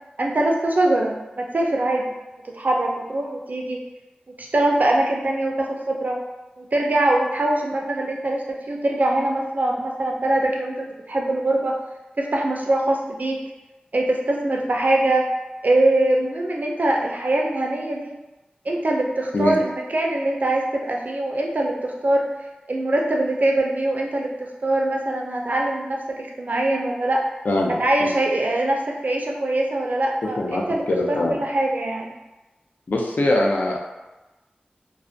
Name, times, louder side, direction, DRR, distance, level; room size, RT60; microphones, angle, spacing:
voice 1, 0.2-2.0 2.5-3.8 4.4-6.2 6.6-10.7 11.1-11.7 12.2-13.4 13.9-15.3 15.6-18.1 18.7-22.3 22.7-27.2 27.8-32.1, right 1 dB, 60° right, 0 dB, 0.4 m, -22 dB
voice 2, 27.4-27.8 30.4-31.4 32.9-33.8, left 1 dB, 70° left, -1 dB, 0.4 m, -22 dB
2.3 x 2.1 x 2.5 m, 1.1 s
wide cardioid pair, 50°, 3 cm